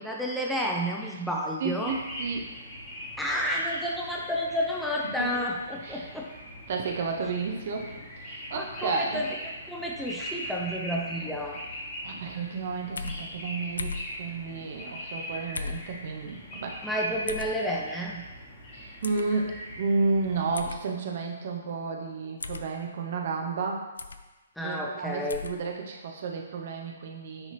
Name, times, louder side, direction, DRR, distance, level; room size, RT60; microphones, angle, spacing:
voice 1, 0.0-1.9 3.2-6.2 8.5-11.6 16.8-18.2 24.6-25.4, equal, ahead, -2 dB, 0.7 m, -31 dB
voice 2, 1.6-2.5 5.2-6.1 6.7-7.9 8.2-9.2 12.0-16.8 18.7-23.9 24.6-27.5, right 4 dB, 45° right, 1 dB, 0.8 m, -32 dB
sound 1, 1.8-20.7, equal, 25° left, 1.6 m, -41 dB
sound 2, 13.0-13.2 13.8-14.1 15.5-15.9 17.3-17.5 19.0-19.2 20.5-20.8 22.4-22.7 24.0-24.2 25.3-25.5, left 4 dB, 65° left, 0.4 m, -35 dB
9.6 x 4.0 x 3.2 m, 1.2 s
figure-of-eight pair, 125°, 0 cm